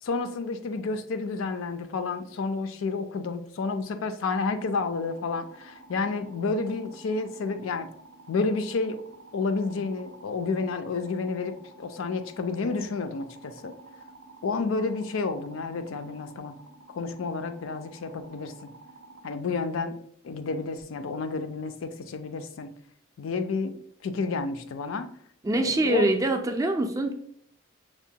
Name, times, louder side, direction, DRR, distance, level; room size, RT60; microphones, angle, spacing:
voice 1, 0.0-7.9 8.3-9.0 9.3-13.7 14.4-16.5 16.9-18.7 19.2-20.0 20.2-22.7 23.2-23.7 24.0-25.1 25.5-26.1, left 4 dB, 85° left, 0.4 m, -30 dB
sound 1, 4.6-19.3, right 2 dB, 80° right, 0.5 m, -51 dB
voice 2, 25.4-27.1, right 2 dB, 15° right, 0.3 m, -24 dB
6.0 x 2.1 x 2.7 m
head